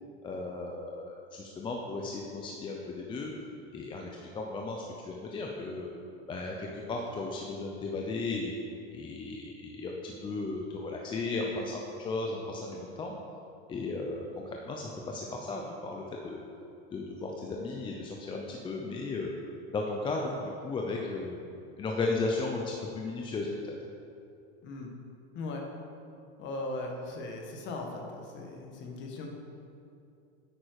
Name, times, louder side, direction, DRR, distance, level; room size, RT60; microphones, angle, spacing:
voice 1, 0.2-3.3 3.7-4.1 4.3-5.9 6.3-8.5 8.9-13.1 13.7-16.4 16.9-19.3 19.7-21.4 21.8-23.7, left 3 dB, 15° left, 0 dB, 0.6 m, -35 dB
voice 2, 26.4-29.3, left 2 dB, 35° left, 1 dB, 1.5 m, -38 dB
9.8 x 8.6 x 4.8 m, 2.6 s
supercardioid pair, 150°, 32 cm